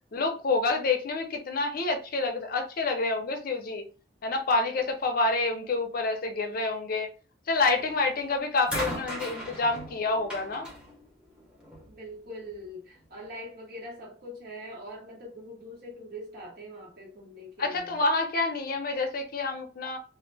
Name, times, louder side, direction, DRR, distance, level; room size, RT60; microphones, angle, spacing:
voice 1, 0.1-3.9 4.2-7.1 7.5-10.7 17.6-20.0, left 3 dB, 55° left, 0.5 m, -28 dB
sound 1, 7.7-8.1 8.7-11.9 13.0-13.1, equal, 5° right, 0.7 m, -38 dB
voice 2, 11.9-18.0, equal, 60° right, 1.1 m, -43 dB
2.4 x 2.1 x 3.2 m
head